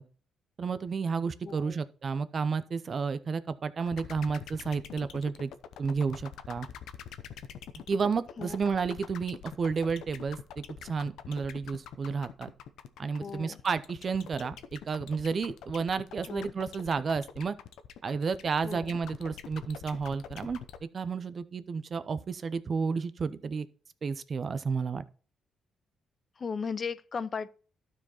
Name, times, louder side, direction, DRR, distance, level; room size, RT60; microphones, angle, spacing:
voice 1, 0.6-5.5 5.8-6.7 7.9-12.5 13.0-17.6 18.0-20.6 20.9-23.7 24.0-25.0, right 5 dB, 45° right, 0.7 m, -31 dB
voice 2, 1.4-1.8 8.4-8.6 13.2-13.6 16.3-16.5 18.6-18.9 26.4-27.5, left 5 dB, 40° left, 0.4 m, -36 dB
sound 1, 3.9-20.8, left 9 dB, 80° left, 0.8 m, -45 dB
12.5 x 4.8 x 4.3 m
cardioid pair, 90°, 0 cm